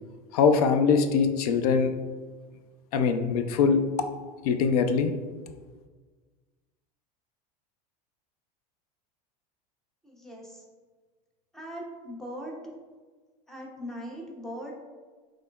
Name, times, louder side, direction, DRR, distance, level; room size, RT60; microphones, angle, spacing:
voice 1, 0.3-1.9 2.9-3.8 4.4-5.1, left 5 dB, 85° left, 8 dB, 0.5 m, -22 dB
voice 2, 10.0-10.6 11.5-12.6 13.5-14.7, equal, ahead, -2 dB, 0.6 m, -40 dB
6.2 x 3.1 x 2.3 m, 1.4 s
supercardioid pair, 155°, 19 cm